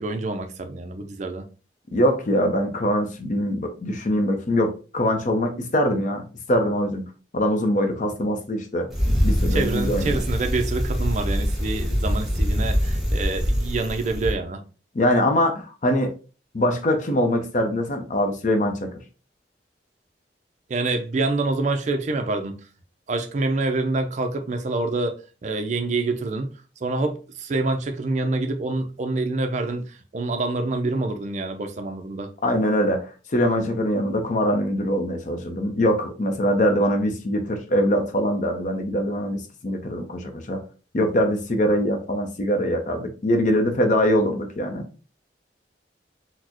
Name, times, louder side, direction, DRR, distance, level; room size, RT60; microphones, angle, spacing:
voice 1, 0.0-1.4 9.5-14.6 20.7-22.6 23.1-25.1 25.4-26.5 26.8-32.3, right 3 dB, 40° right, 0.4 m, -26 dB
voice 2, 1.9-7.1 7.3-8.9 9.2-10.2 14.9-16.1 16.5-18.9 32.4-40.6 40.9-44.8, equal, 45° left, 0.6 m, -23 dB
Bicycle, 8.9-14.3, equal, ahead, 0.9 m, -24 dB
4.2 x 2.1 x 2.9 m
head